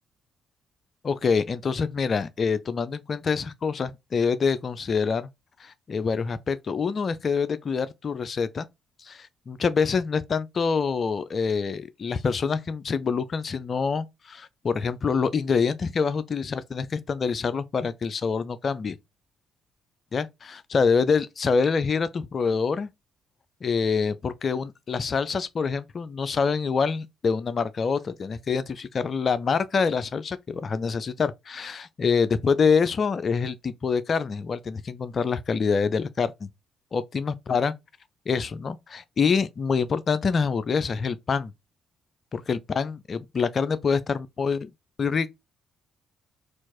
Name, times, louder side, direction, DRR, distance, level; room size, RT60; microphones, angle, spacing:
voice 1, 1.0-5.3 5.6-8.7 9.0-19.0 20.1-22.9 23.6-36.5 36.9-37.7 38.3-41.5 42.3-44.7 45.0-45.3, left 5 dB, 45° left, 0.4 m, -26 dB
4.4 x 2.4 x 2.9 m
figure-of-eight pair, 45°, 0 cm